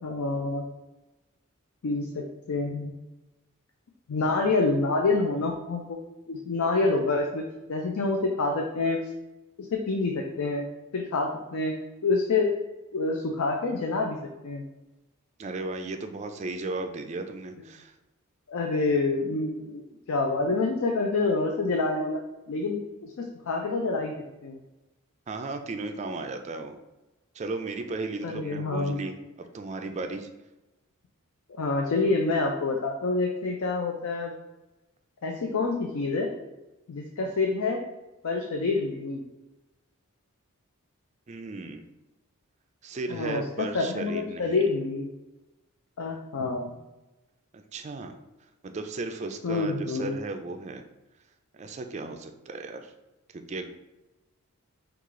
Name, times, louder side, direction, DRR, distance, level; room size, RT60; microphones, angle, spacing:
voice 1, 0.0-0.7 1.8-2.9 4.1-6.0 6.3-7.4 7.7-9.0 9.6-10.7 10.9-11.7 12.0-12.6 12.9-14.2 14.4-14.6 18.5-19.8 20.1-22.2 22.5-24.1 24.4-24.6 28.2-29.0 31.6-34.3 35.2-36.3 36.9-37.8 38.2-39.2 43.1-45.1 46.0-46.7 49.4-50.2, left 3 dB, 75° left, 2 dB, 0.5 m, -27 dB
voice 2, 15.4-17.9 25.3-26.8 27.3-30.3 41.3-41.9 42.8-44.6 47.5-48.1 48.6-50.9 51.5-52.9 53.3-53.7, right 3 dB, 30° right, 6 dB, 0.3 m, -35 dB
4.7 x 2.4 x 3.6 m, 1.0 s
head